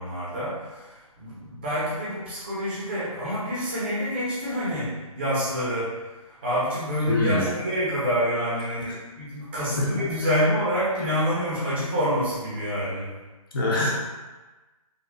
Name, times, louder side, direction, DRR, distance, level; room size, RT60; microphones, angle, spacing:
voice 1, 0.0-6.0 6.3-13.1, equal, 20° right, -9 dB, 0.5 m, -27 dB
voice 2, 7.1-7.5 8.9-9.0 9.8-10.1 13.5-13.9, left 2 dB, 35° left, -4 dB, 0.4 m, -24 dB
2.5 x 2.2 x 2.2 m, 1.2 s
figure-of-eight pair, 155°, 19 cm